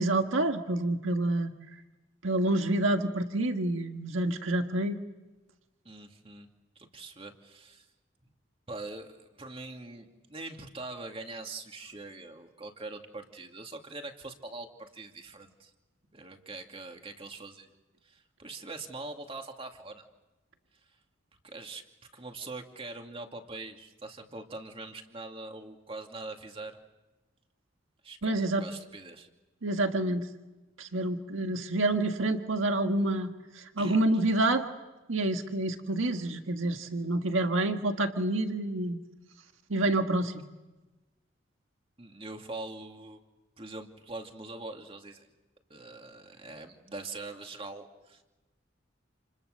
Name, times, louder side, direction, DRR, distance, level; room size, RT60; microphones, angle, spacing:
voice 1, 0.0-1.5 2.2-5.0 28.2-28.6 29.6-30.3 30.8-33.3 33.5-34.7 35.1-39.0 39.7-40.4, right 2 dB, 90° right, 5 dB, 1.7 m, -28 dB
voice 2, 5.8-6.5 6.8-7.9 8.7-15.7 16.1-17.7 18.0-20.0 21.4-21.8 22.1-26.8 28.0-29.3 33.8-34.0 42.0-43.2 43.6-45.3 45.7-48.2, right 2 dB, 30° right, 4 dB, 2.6 m, -43 dB
29.5 x 29.5 x 6.7 m, 1.1 s
head